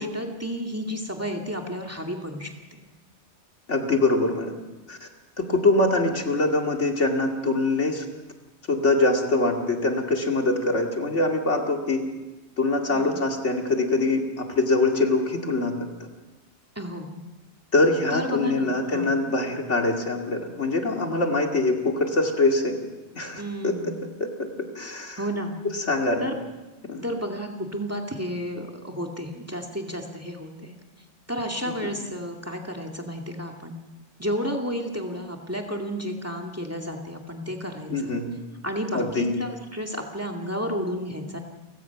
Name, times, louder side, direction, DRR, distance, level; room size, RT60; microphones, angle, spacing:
voice 1, 0.0-2.8 12.9-13.2 16.8-17.1 18.1-19.1 23.4-23.9 25.2-25.5 26.2-26.4 27.0-30.8 31.3-33.7 34.2-38.1 38.6-41.4, equal, 10° right, 1 dB, 2.2 m, -32 dB
voice 2, 3.7-4.5 4.9-5.1 5.4-8.1 8.7-12.0 12.6-15.8 17.7-22.8 23.2-23.9 24.2-25.2 25.7-26.3 26.9-27.0 31.8-31.9 37.9-38.3 38.9-39.3, left 2 dB, 85° left, 2 dB, 2.6 m, -24 dB
29.5 x 16.5 x 5.9 m, 1.1 s
omnidirectional pair, 1.2 m